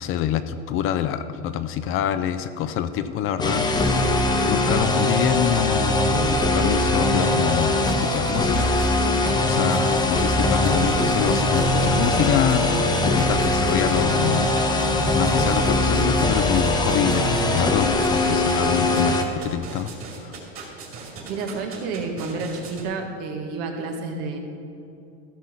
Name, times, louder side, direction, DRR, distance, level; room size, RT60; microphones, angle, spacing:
voice 1, 0.0-3.7 4.0-6.0 6.3-8.7 9.4-19.9 20.2-20.3, left 10 dB, 35° left, 11 dB, 0.4 m, -26 dB
sound 1, 3.4-19.2, left 2 dB, 10° left, 0.9 m, -21 dB
sound 2, 7.8-22.8, right 4 dB, 35° right, 2.6 m, -39 dB
voice 2, 21.3-24.4, right 4 dB, 70° right, 3 dB, 1.7 m, -30 dB
14.5 x 6.2 x 5.6 m, 2.7 s
supercardioid pair, 135°, 37 cm